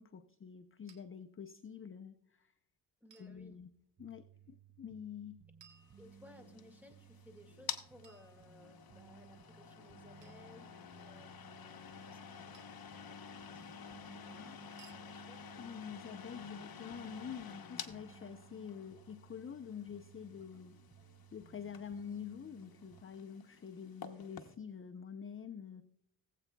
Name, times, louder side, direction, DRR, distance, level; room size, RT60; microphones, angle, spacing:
voice 1, 0.0-2.5 3.2-3.7 4.0-5.4 14.4-14.6 15.6-20.8 21.3-25.8, left 7 dB, 30° left, 9 dB, 0.5 m, -47 dB
sound 1, 0.9-1.0 3.1-3.4 5.6-6.5 8.0-8.9 10.2-10.5 12.5-12.9 14.8-15.1, right 6 dB, 70° right, 1.8 m, -63 dB
voice 2, 3.0-3.6 5.9-15.5, left 2 dB, 5° right, 6 dB, 1.8 m, -61 dB
sound 2, 4.0-23.0, right 8 dB, 25° right, 0.5 m, -61 dB
sound 3, 5.8-24.5, left 7 dB, 50° left, 0.9 m, -51 dB
18.5 x 8.2 x 2.2 m, 0.73 s
cardioid pair, 85°, 45 cm